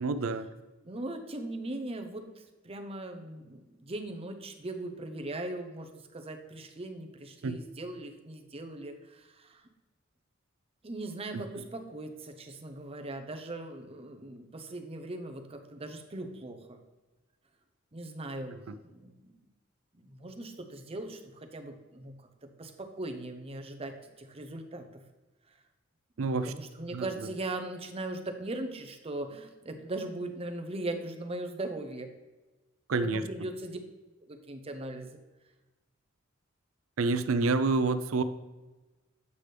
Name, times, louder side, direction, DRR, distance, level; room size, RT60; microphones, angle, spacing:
voice 1, 0.0-0.5 7.4-7.6 11.3-11.4 26.2-26.5 26.9-27.3 32.9-33.2 37.0-38.2, right 3 dB, 80° right, 12 dB, 0.5 m, -28 dB
voice 2, 0.8-9.7 10.8-16.8 17.9-18.6 18.8-19.3 19.9-25.0 25.5-25.6 26.2-32.1 33.1-33.8 34.3-35.2, right 2 dB, 30° right, 4 dB, 0.7 m, -39 dB
8.4 x 5.9 x 3.3 m, 1.2 s
head